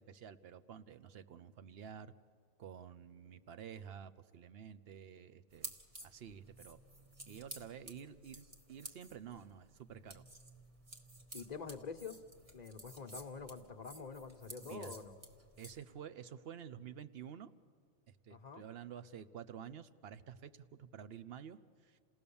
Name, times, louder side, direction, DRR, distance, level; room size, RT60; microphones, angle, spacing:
voice 1, 0.0-2.1 2.6-5.7 6.0-6.8 7.3-10.2 14.6-14.9 15.6-17.5 18.2-22.0, right 8 dB, 60° right, 13 dB, 0.9 m, -50 dB
sound 1, 5.5-15.8, right 1 dB, 30° right, 1.4 m, -53 dB
voice 2, 11.3-12.2 12.5-15.1 18.3-18.6, left 5 dB, 40° left, 8 dB, 1.0 m, -46 dB
28.5 x 17.5 x 7.0 m, 2.2 s
omnidirectional pair, 1.2 m